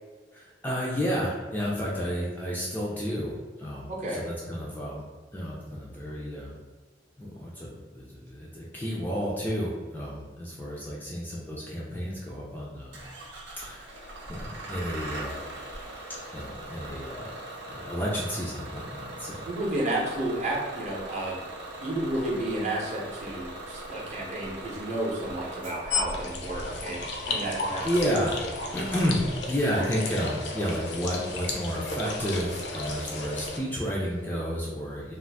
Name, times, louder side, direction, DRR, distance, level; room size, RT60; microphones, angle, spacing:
voice 1, 0.3-5.0 5.3-6.6 7.2-13.0 13.6-14.0 14.3-15.4 16.3-17.4 17.7-19.5 27.8-28.4 28.7-35.2, equal, 10° left, -5 dB, 0.3 m, -31 dB
voice 2, 3.9-4.2 19.5-21.4 21.8-27.9, right 1 dB, 40° right, -3 dB, 0.6 m, -31 dB
Bus / Engine starting, 12.9-29.1, right 1 dB, 80° right, 0.7 m, -41 dB
sound 1, 25.9-33.6, left 3 dB, 75° left, 0.5 m, -34 dB
2.5 x 2.4 x 3.3 m, 1.4 s
head